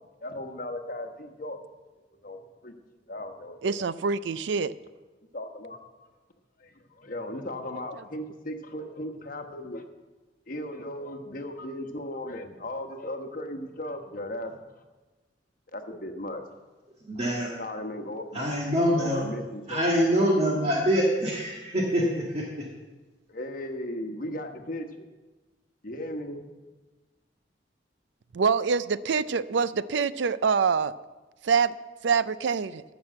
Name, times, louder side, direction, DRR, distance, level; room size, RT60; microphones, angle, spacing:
voice 1, 0.2-1.6 2.2-2.7 3.1-3.9 5.3-5.8 6.6-9.9 10.5-14.5 15.7-16.4 17.6-18.5 18.8-20.1 23.3-25.1 25.8-26.5, left 1 dB, 50° left, 5 dB, 1.2 m, -36 dB
voice 2, 3.6-4.7 28.3-30.9 31.4-31.7 32.0-32.8, right 5 dB, 90° right, 16 dB, 0.5 m, -25 dB
voice 3, 17.0-17.5 18.3-19.2 19.7-22.4, equal, 35° right, -3 dB, 1.8 m, -25 dB
14.0 x 6.2 x 7.7 m, 1.2 s
head